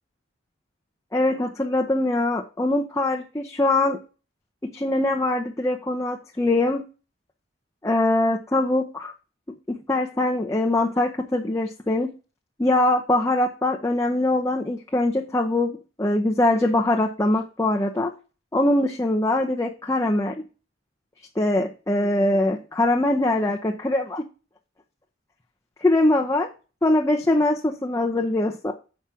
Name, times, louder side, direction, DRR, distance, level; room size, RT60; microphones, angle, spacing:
voice 1, 1.1-4.0 4.6-6.8 7.8-9.1 9.7-12.1 12.6-18.1 18.5-20.4 21.4-24.2 25.8-26.5 26.8-28.7, left 2 dB, 15° left, 1 dB, 0.6 m, -22 dB
7.4 x 4.9 x 5.6 m, 0.34 s
head